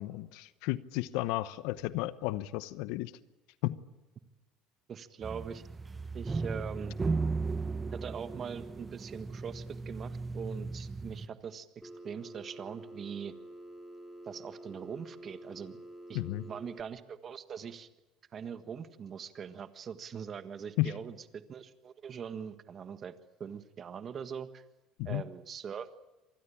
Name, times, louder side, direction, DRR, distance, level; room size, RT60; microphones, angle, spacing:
voice 1, 0.0-3.1 3.6-3.8 16.1-16.4 20.8-20.9 25.0-25.2, left 17 dB, 80° left, 15 dB, 0.9 m, -33 dB
voice 2, 4.9-5.6 6.1-7.0 7.9-11.7 12.0-13.3 14.2-15.8 16.1-17.9 18.3-23.1 23.4-24.6 25.0-26.0, right 7 dB, 40° right, 10 dB, 1.5 m, -42 dB
sound 1, 5.2-11.3, right 4 dB, 20° right, 0.9 m, -36 dB
Telephone, 11.8-16.8, right 1 dB, ahead, 2.7 m, -48 dB
26.0 x 20.0 x 8.7 m, 1.1 s
supercardioid pair, 110°, 0 cm